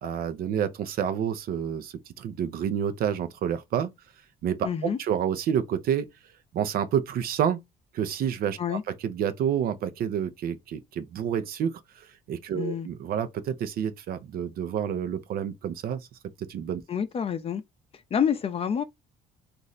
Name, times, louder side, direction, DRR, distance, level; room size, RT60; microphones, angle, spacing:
voice 1, 0.0-3.9 4.4-6.1 6.5-7.6 7.9-11.8 12.3-16.0 16.4-16.8, right 8 dB, 65° right, 0.7 m, -29 dB
voice 2, 4.6-5.0 8.6-8.8 12.5-12.9 16.9-17.6 18.1-18.8, left 8 dB, 35° left, 0.6 m, -27 dB
3.2 x 2.6 x 3.9 m
cardioid pair, 110°, 17 cm